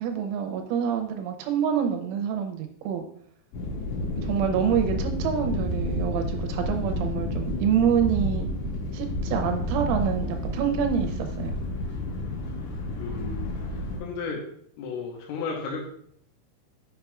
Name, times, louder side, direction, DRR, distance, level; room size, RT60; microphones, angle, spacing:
voice 1, 0.0-3.0 4.2-8.5 8.9-11.6, right 8 dB, 80° right, 5 dB, 2.9 m, -27 dB
sound 1, 3.5-14.0, left 1 dB, 70° left, 3.9 m, -30 dB
voice 2, 4.5-4.8 13.0-13.5 14.0-14.4 14.8-15.9, left 5 dB, 90° left, -1 dB, 3.5 m, -34 dB
7.9 x 5.8 x 2.3 m, 0.66 s
omnidirectional pair, 5.9 m